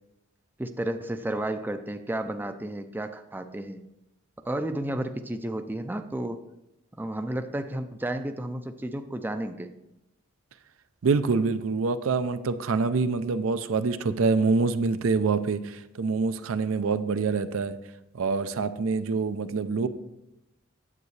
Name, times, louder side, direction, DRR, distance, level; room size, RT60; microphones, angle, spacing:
voice 1, 0.6-3.8 4.5-6.4 7.0-9.7, right 1 dB, 10° right, 8 dB, 0.4 m, -32 dB
voice 2, 11.0-17.8 18.1-19.9, right 4 dB, 75° right, 11 dB, 0.5 m, -26 dB
9.5 x 7.8 x 3.2 m, 0.89 s
head